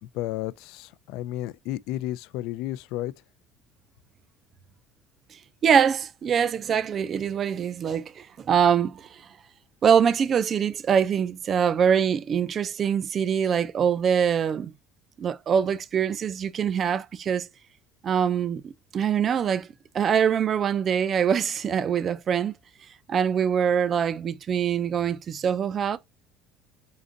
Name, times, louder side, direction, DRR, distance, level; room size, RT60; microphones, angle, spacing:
voice 1, 0.0-3.1, left 14 dB, 75° left, 0.3 m, -32 dB
voice 2, 5.3-9.3 9.8-14.7 15.2-17.5 18.0-19.7 19.9-22.5 23.1-26.0, right 7 dB, 35° right, 0.4 m, -24 dB
4.2 x 3.9 x 2.5 m
cardioid pair, 140°, 0 cm